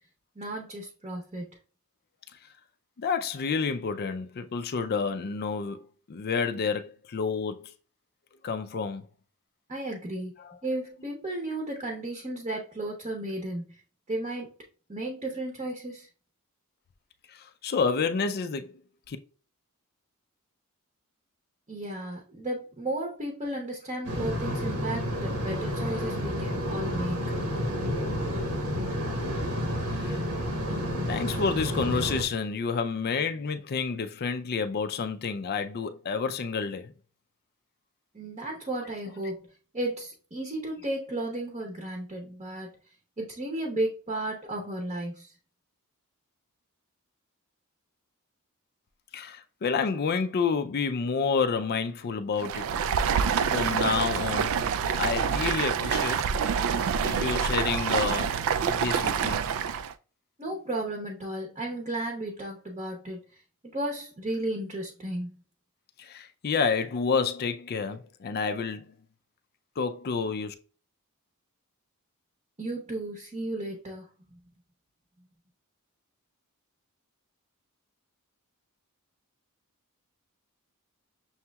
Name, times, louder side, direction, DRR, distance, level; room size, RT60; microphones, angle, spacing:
voice 1, 0.4-1.5 9.7-10.3 10.6-13.6 14.1-14.5 14.9-16.1 21.7-27.2 38.1-39.5 39.7-42.8 43.2-45.3 60.4-63.2 63.7-65.4 72.6-74.4, right 1 dB, 30° right, 0.8 m, -34 dB
voice 2, 3.0-5.8 6.1-7.7 8.4-9.0 10.4-10.5 17.3-18.7 19.1-19.2 29.9-30.2 31.1-36.9 49.1-52.7 53.1-54.5 55.0-56.3 57.0-59.4 66.0-68.9 69.8-70.5, left 5 dB, 45° left, 0.4 m, -29 dB
sound 1, 24.0-32.2, equal, 85° right, 1.2 m, -30 dB
Stream, 52.4-59.9, right 7 dB, 65° right, 0.3 m, -27 dB
6.3 x 2.8 x 2.3 m
head